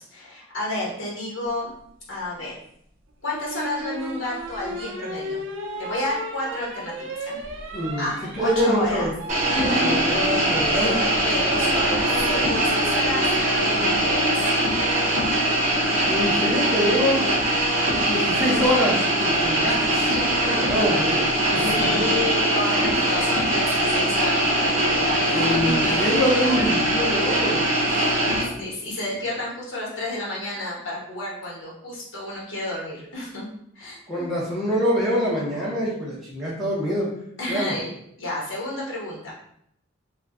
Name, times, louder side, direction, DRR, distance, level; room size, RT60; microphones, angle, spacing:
voice 1, 0.0-1.7 2.1-2.6 3.2-5.5 5.8-7.4 8.0-9.1 9.5-10.0 10.6-14.4 21.6-26.1 27.8-28.2 28.5-33.4 33.7-34.3 37.4-37.9 38.2-39.3, left 1 dB, 65° left, -5 dB, 1.2 m, -31 dB
sound 1, 3.3-14.5 16.2-16.6, right 1 dB, 80° right, 0.5 m, -34 dB
voice 2, 7.7-8.1 8.3-9.1 9.6-10.9 16.1-17.3 18.0-21.9 25.3-27.6 34.1-37.1 37.5-37.7, equal, ahead, -9 dB, 0.7 m, -25 dB
sound 2, 9.3-28.4, right 1 dB, 35° right, 0.7 m, -22 dB
2.5 x 2.2 x 3.4 m, 0.72 s
head